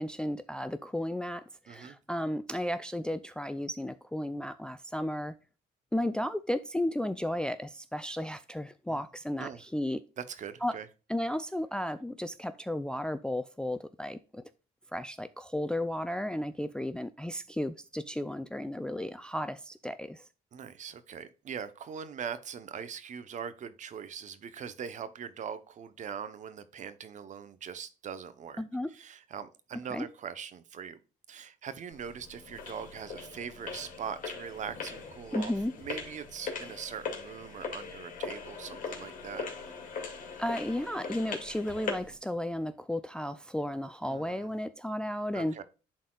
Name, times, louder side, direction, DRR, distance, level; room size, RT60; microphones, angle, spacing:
voice 1, 0.0-5.3 5.9-10.0 10.6-10.8 11.1-14.4 14.9-20.2 28.6-28.9 29.9-30.1 35.3-35.7 40.4-45.6, left 1 dB, 5° left, 0.4 m, -34 dB
voice 2, 10.2-10.9 20.5-28.6 28.9-31.0 31.3-35.5 35.8-39.5 44.1-44.5 45.3-45.6, right 7 dB, 45° right, 0.8 m, -41 dB
sound 1, 31.9-42.2, left 5 dB, 50° left, 2.2 m, -40 dB
11.5 x 4.1 x 2.3 m
cardioid pair, 110°, 17 cm